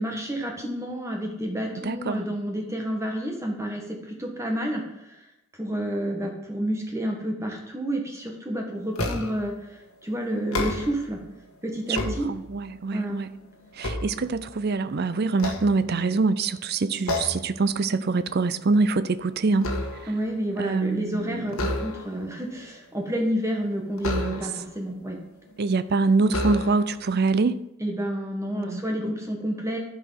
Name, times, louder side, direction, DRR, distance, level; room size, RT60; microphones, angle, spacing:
voice 1, 0.0-5.2 5.6-11.2 11.6-12.3 12.9-13.2 20.1-25.2 27.8-29.8, right 1 dB, 15° right, 1.6 m, -30 dB
voice 2, 1.8-2.3 12.3-13.3 13.8-19.8 20.6-21.7 24.0-24.5 25.6-27.6 28.5-28.8, right 3 dB, 45° right, 0.5 m, -25 dB
sound 1, 9.0-9.5 10.4-11.2 11.7-12.8 13.3-14.8 15.3-16.3 17.1-17.6 17.9-18.2 18.6-20.3 21.5-22.3 24.0-24.8 25.5-25.6 26.3-27.0, left 1 dB, 70° left, 1.4 m, -31 dB
12.0 x 4.9 x 5.8 m
head